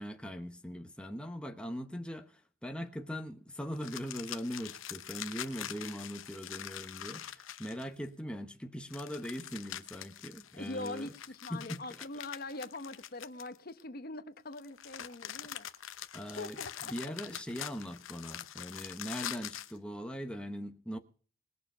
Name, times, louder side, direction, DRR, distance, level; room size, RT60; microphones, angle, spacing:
voice 1, 0.0-11.1 11.5-11.8 15.4-15.5 16.1-21.0, equal, 5° left, 0.9 m, -41 dB
sound 1, 3.8-8.1 8.9-13.8 14.5-19.8, left 10 dB, 75° left, 0.8 m, -44 dB
voice 2, 10.5-15.7 16.2-16.9, left 2 dB, 45° left, 1.0 m, -43 dB
20.5 x 6.8 x 5.6 m
head